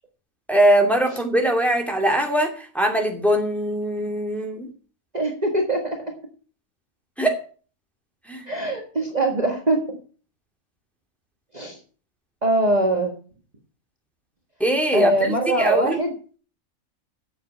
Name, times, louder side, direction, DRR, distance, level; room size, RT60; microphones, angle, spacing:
voice 1, 0.5-4.7 7.2-7.4 8.3-8.4 14.6-16.0, right 1 dB, ahead, 2 dB, 2.4 m, -21 dB
voice 2, 5.1-6.0 8.5-9.8 11.5-11.8 12.4-13.1 14.9-16.1, right 1 dB, 30° right, 1 dB, 1.7 m, -22 dB
8.4 x 7.8 x 8.1 m, 0.40 s
omnidirectional pair, 1.5 m